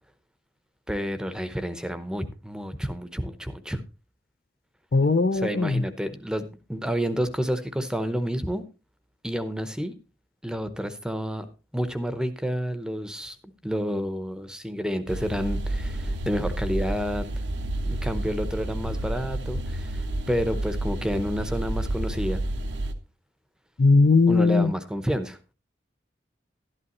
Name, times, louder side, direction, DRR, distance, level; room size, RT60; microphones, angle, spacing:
voice 1, 0.9-3.8 5.3-8.6 9.2-9.9 10.4-11.5 11.7-13.4 13.6-17.3 17.8-22.4 24.3-25.4, equal, 5° right, 0.8 m, -29 dB
voice 2, 4.9-5.8 23.8-24.7, left 3 dB, 50° left, 0.5 m, -19 dB
sound 1, 15.1-22.9, right 1 dB, 80° right, 1.0 m, -30 dB
12.0 x 11.0 x 3.0 m
head